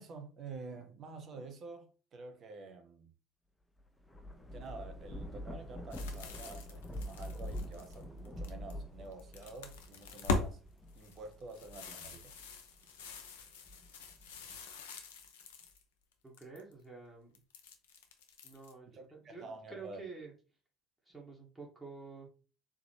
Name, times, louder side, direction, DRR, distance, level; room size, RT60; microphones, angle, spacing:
voice 1, 0.0-3.1 4.5-10.6 11.0-12.3 18.9-20.0, right 3 dB, 40° right, 0.8 m, -49 dB
Thunder / Rain, 3.8-12.7 13.2-14.6, equal, 10° left, 0.6 m, -45 dB
sound 1, 5.9-8.7 9.1-10.5 10.9-15.8 16.1-16.7 17.3-18.7, left 3 dB, 65° left, 0.6 m, -42 dB
voice 2, 16.2-17.4 18.4-20.3 21.0-22.3, right 4 dB, 10° right, 1.3 m, -49 dB
3.6 x 3.0 x 3.2 m
figure-of-eight pair, 60°, 0 cm